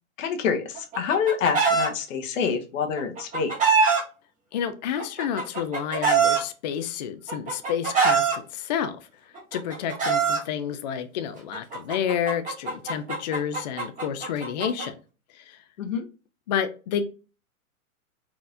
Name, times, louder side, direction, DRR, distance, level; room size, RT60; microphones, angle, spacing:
voice 1, 0.2-3.8 15.8-16.0, left 6 dB, 60° left, 1.0 m, -27 dB
Chicken rooster, 0.7-1.9 3.0-4.0 5.0-6.4 7.3-8.3 9.3-10.4 11.5-14.8, right 5 dB, 15° right, 1.4 m, -23 dB
voice 2, 4.5-9.0 9.5-14.9 15.4-15.6 16.5-17.1, left 8 dB, 35° left, 0.4 m, -30 dB
4.3 x 3.8 x 2.5 m
hypercardioid pair, 125°, 44 cm